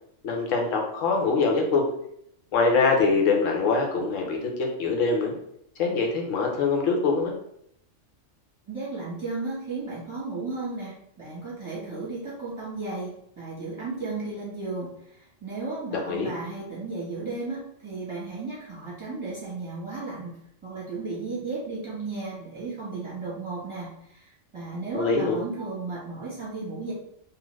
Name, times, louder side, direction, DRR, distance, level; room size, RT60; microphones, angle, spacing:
voice 1, 0.2-1.9 2.5-5.3 5.8-7.3 15.9-16.3 24.9-25.4, left 4 dB, 85° left, 1 dB, 1.0 m, -24 dB
voice 2, 8.7-26.9, right 3 dB, 25° right, -8 dB, 1.0 m, -34 dB
2.5 x 2.4 x 3.1 m, 0.72 s
omnidirectional pair, 1.3 m